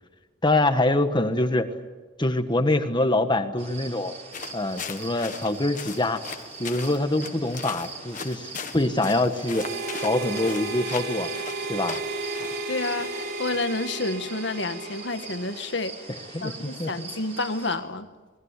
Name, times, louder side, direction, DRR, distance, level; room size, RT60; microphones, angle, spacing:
voice 1, 0.4-1.7 2.2-4.1 4.5-6.2 6.6-9.7 10.0-11.3 11.7-12.0 16.3-16.9, left 2 dB, 25° left, 1.5 m, -24 dB
sound 1, 3.6-17.8, right 4 dB, 35° right, 5.0 m, -42 dB
sound 2, 4.3-13.6, left 6 dB, 45° left, 1.6 m, -40 dB
Harmonica, 9.5-15.9, right 3 dB, 60° right, 3.6 m, -34 dB
voice 2, 12.7-16.1 16.4-18.1, left 3 dB, 70° left, 1.6 m, -30 dB
28.0 x 20.5 x 8.4 m
head